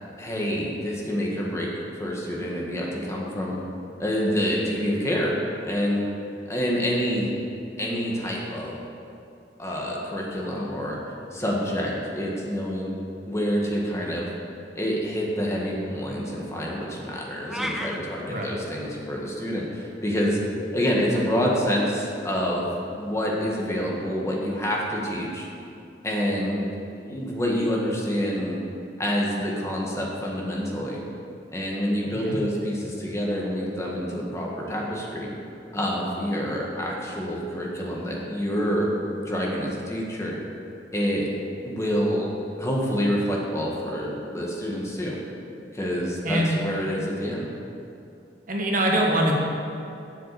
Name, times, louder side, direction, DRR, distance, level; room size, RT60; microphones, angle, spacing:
voice 1, 0.2-3.6 4.0-5.3 5.6-6.0 6.5-7.3 7.8-8.8 9.6-11.0 11.3-12.9 13.3-14.3 14.8-20.4 20.7-25.5 26.0-26.7 26.9-28.6 29.0-31.0 31.5-35.3 35.7-38.9 39.2-40.4 40.9-41.3 41.6-42.3 42.6-45.2 45.7-47.5, equal, 15° left, -3 dB, 1.6 m, -27 dB
sound 1, 17.5-18.0, equal, ahead, 0.6 m, -30 dB
voice 2, 18.3-18.6 32.2-32.4 46.2-46.6 48.5-49.3, right 1 dB, 50° right, -1 dB, 1.5 m, -23 dB
7.8 x 7.4 x 8.5 m, 2.6 s
head